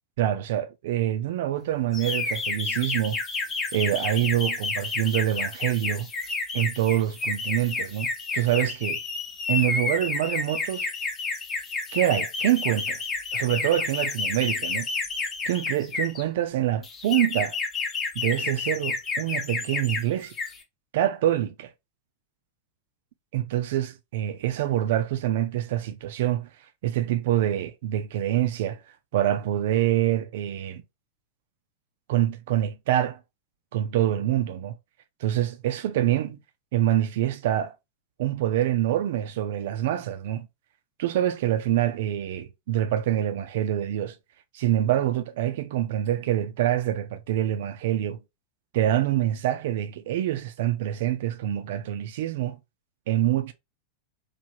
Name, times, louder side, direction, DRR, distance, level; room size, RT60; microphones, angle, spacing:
voice 1, 0.2-3.2 3.7-6.1 6.5-9.0 9.5-10.9 11.9-13.0 13.3-14.9 15.5-17.6 18.2-20.3 20.9-21.7 23.3-26.5 26.8-28.8 29.1-30.8 32.1-33.2 33.7-34.8 35.2-36.4 36.7-37.7 38.2-40.5 41.0-44.2 44.5-48.2 48.7-52.6 53.1-53.5, right 12 dB, 55° right, 0.3 m, -25 dB
sound 1, 1.9-16.2 16.8-20.0 20.3-20.6, left 4 dB, 25° left, 0.7 m, -30 dB
3.2 x 2.2 x 2.7 m
figure-of-eight pair, 90°, 0 cm